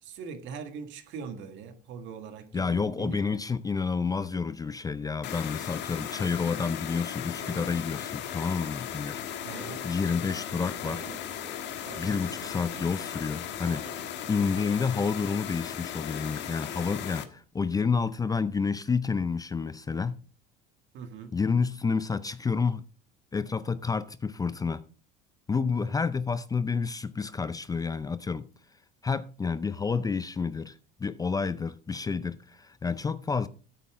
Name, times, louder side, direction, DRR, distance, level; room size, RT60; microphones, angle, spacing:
voice 1, 0.0-3.3 9.4-9.9 20.9-21.3 25.9-26.0, right 6 dB, 60° right, 1.9 m, -41 dB
voice 2, 2.5-9.2 9.8-11.0 12.0-13.9 14.3-20.2 21.3-22.8 23.3-24.9 25.5-28.5 29.0-33.5, left 5 dB, 15° left, 0.5 m, -29 dB
sound 1, 5.2-17.3, left 10 dB, 60° left, 1.5 m, -37 dB
sound 2, 7.4-14.6, right 4 dB, 85° right, 4.1 m, -49 dB
13.5 x 8.4 x 3.7 m
supercardioid pair, 105°, 21 cm